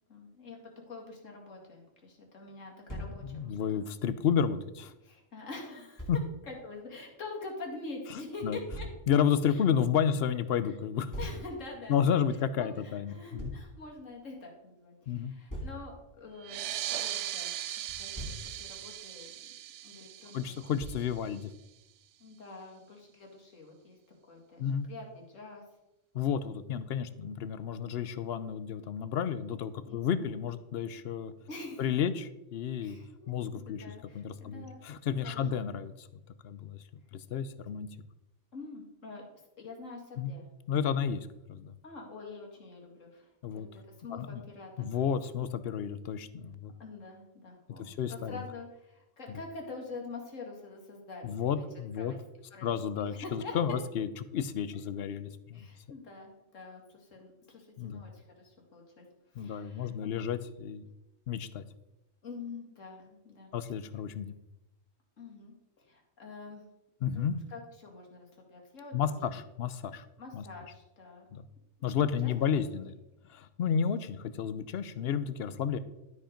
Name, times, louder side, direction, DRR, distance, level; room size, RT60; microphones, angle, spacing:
voice 1, 0.1-0.6 0.9-3.8 5.0-6.1 6.4-8.9 9.5-9.6 10.6-10.7 11.2-12.2 12.6-17.5 18.0-19.5 19.8-21.4 22.2-24.0 24.3-25.6 29.8-30.3 31.5-31.9 32.8-34.8 35.2-35.8 38.5-39.3 39.6-40.5 41.8-44.9 46.8-51.6 52.0-52.2 52.5-53.5 55.5-60.3 62.2-63.5 65.2-66.7 67.1-69.4 70.2-71.3 71.9-72.3, left 3 dB, 75° left, -1 dB, 2.4 m, -46 dB
Thump thud, 2.9-3.2 6.0-6.2 8.7-9.0 11.1-11.4 13.4-13.7 15.5-15.8 17.9-18.5 20.8-21.1, equal, 15° left, 2.4 m, -39 dB
voice 2, 3.2-4.9 6.1-6.2 8.1-8.6 9.1-11.1 11.9-13.5 15.1-15.3 20.3-21.5 24.6-24.9 26.1-31.3 31.8-33.0 33.3-33.8 34.1-36.1 36.4-36.8 37.1-37.9 40.2-40.3 40.7-41.7 43.4-43.7 44.1-44.4 44.8-46.7 47.8-48.4 49.3-49.4 51.2-52.1 52.6-55.7 57.8-58.0 59.4-60.8 61.3-61.6 63.5-64.3 67.0-67.4 68.9-70.1 70.3-70.4 71.3-71.5 71.8-72.9 73.3-75.8, left 8 dB, 60° left, 13 dB, 0.8 m, -31 dB
sound 1, 16.4-21.5, right 12 dB, 70° right, 0.8 m, -39 dB
12.0 x 5.1 x 5.1 m, 0.93 s
omnidirectional pair, 1.3 m